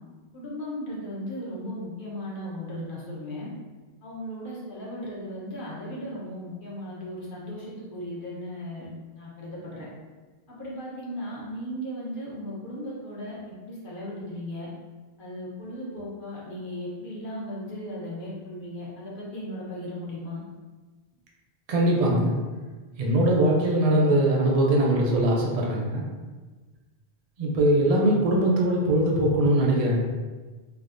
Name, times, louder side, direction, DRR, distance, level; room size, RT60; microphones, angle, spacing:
voice 1, 0.3-3.5 4.0-8.9 9.1-9.9 10.5-14.7 15.2-20.4, equal, 55° left, -5 dB, 1.0 m, -36 dB
voice 2, 21.7-22.4 23.0-26.0 27.4-30.0, right 1 dB, 50° right, -3 dB, 0.5 m, -21 dB
3.4 x 2.5 x 2.5 m, 1.3 s
omnidirectional pair, 1.0 m